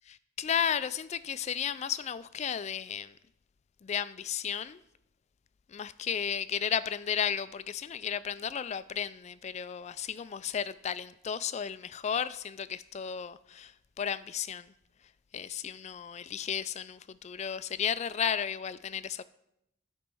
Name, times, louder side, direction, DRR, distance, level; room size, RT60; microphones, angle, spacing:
voice 1, 0.4-3.1 3.8-4.8 5.7-14.7 15.3-19.2, left 8 dB, 35° left, 0.3 m, -34 dB
12.5 x 4.5 x 5.4 m
head